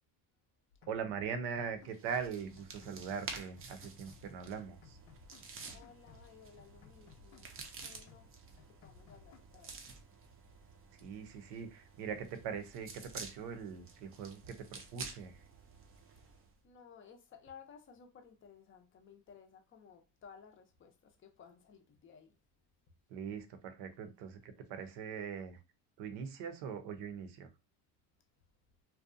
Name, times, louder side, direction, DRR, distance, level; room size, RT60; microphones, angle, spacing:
sound 1, 0.7-2.3 2.6-4.3 4.6-6.3 6.6-8.3 8.6-9.4, left 7 dB, 80° left, 0.6 m, -61 dB
voice 1, 0.9-5.0 11.0-15.5 23.1-25.6 26.0-27.5, right 6 dB, 65° right, 0.7 m, -41 dB
sound 2, 1.9-16.5, right 4 dB, 30° right, 0.5 m, -51 dB
voice 2, 5.7-7.5 7.8-8.3 8.6-9.8 16.6-22.4, left 6 dB, 30° left, 0.5 m, -57 dB
2.6 x 2.2 x 2.5 m
supercardioid pair, 115°, 44 cm